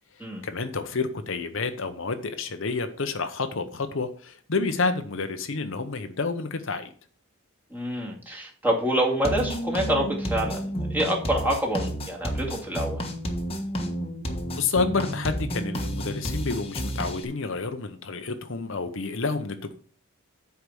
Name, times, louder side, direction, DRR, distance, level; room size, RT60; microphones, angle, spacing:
voice 1, 0.4-6.9 14.6-19.8, left 4 dB, 60° left, 7 dB, 0.8 m, -29 dB
voice 2, 7.7-13.0, right 1 dB, 10° right, -2 dB, 2.1 m, -27 dB
sound 1, 9.2-17.3, equal, 25° left, 1.3 m, -31 dB
8.2 x 4.8 x 7.0 m, 0.43 s
head